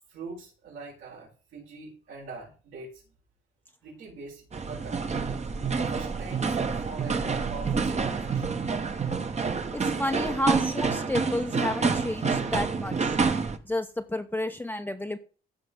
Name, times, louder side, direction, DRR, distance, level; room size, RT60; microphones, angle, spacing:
voice 1, 0.1-3.1 3.8-5.1 5.8-8.6, right 4 dB, 80° right, -7 dB, 5.0 m, -43 dB
sound 1, 4.5-13.6, right 5 dB, 35° right, 1.1 m, -28 dB
voice 2, 9.7-13.2 13.6-15.2, left 1 dB, 10° left, 5 dB, 0.7 m, -31 dB
15.0 x 5.3 x 3.7 m, 0.37 s
cardioid pair, 90°, 20 cm